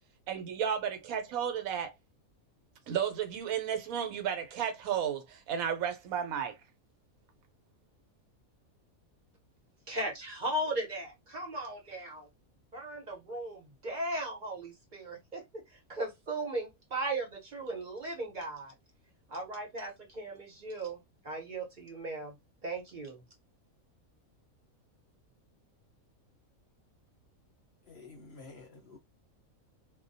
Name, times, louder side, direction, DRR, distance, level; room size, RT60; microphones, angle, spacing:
voice 1, 0.3-1.9 2.9-6.6, right 8 dB, 75° right, 1.0 m, -33 dB
voice 2, 9.9-12.3 12.7-18.7 19.3-22.3 22.6-23.2, right 1 dB, 40° right, 0.8 m, -37 dB
voice 3, 27.9-29.0, left 3 dB, 55° left, 0.8 m, -50 dB
2.4 x 2.1 x 2.6 m
omnidirectional pair, 1.5 m